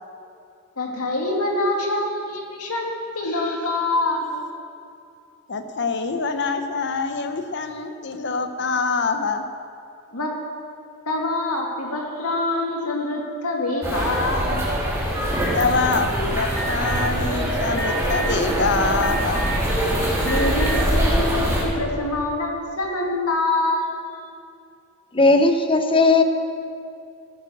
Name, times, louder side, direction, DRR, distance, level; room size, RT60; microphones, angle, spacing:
voice 1, 0.8-4.4 10.1-10.3 11.1-14.6 20.2-23.9, left 2 dB, 80° left, 0 dB, 2.4 m, -25 dB
voice 2, 5.5-9.4 15.5-19.5, left 4 dB, 55° left, 8 dB, 0.9 m, -25 dB
sound 1, 13.8-21.6, equal, 15° right, 2.8 m, -23 dB
Alarm, 16.6-17.1 17.8-18.3 19.0-19.7 20.2-20.8, right 3 dB, 5° left, 0.4 m, -30 dB
voice 3, 25.1-26.2, left 3 dB, 25° left, 7 dB, 0.8 m, -16 dB
14.0 x 9.5 x 6.5 m, 2.5 s
head